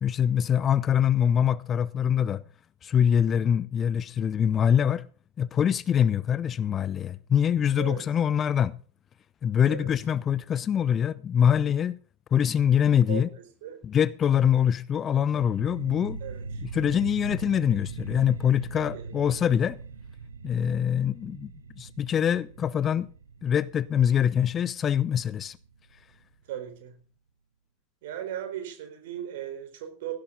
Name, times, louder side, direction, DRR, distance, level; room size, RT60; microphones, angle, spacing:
voice 1, 0.0-2.4 2.8-5.1 5.4-8.7 9.4-12.0 12.3-13.3 13.8-16.2 16.6-19.8 20.4-21.5 21.8-23.1 23.4-25.6, left 8 dB, 25° left, 0.5 m, -24 dB
sound 1, 15.1-26.2, right 4 dB, 70° right, 1.1 m, -41 dB
voice 2, 16.2-16.6 18.8-19.0 26.5-27.0 28.0-30.1, right 11 dB, 55° right, 4.2 m, -37 dB
16.5 x 11.5 x 3.9 m
figure-of-eight pair, 90°, 0 cm